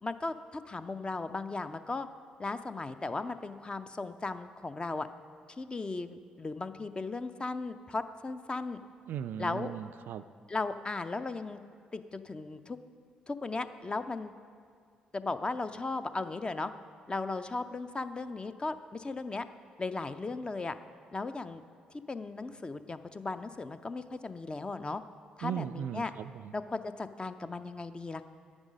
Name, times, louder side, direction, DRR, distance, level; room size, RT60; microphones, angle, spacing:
voice 1, 0.0-2.1 2.4-5.1 5.6-8.8 9.4-9.7 10.5-11.6 11.9-12.8 13.3-14.3 15.1-16.7 17.1-19.5 19.8-20.8 21.1-21.6 22.1-25.0 25.4-26.1 26.5-28.2, left 3 dB, 25° left, 11 dB, 0.5 m, -36 dB
voice 2, 9.1-10.2 25.4-26.5, right 9 dB, 55° right, 12 dB, 0.3 m, -37 dB
9.9 x 9.7 x 5.2 m, 2.1 s
figure-of-eight pair, 40°, 4 cm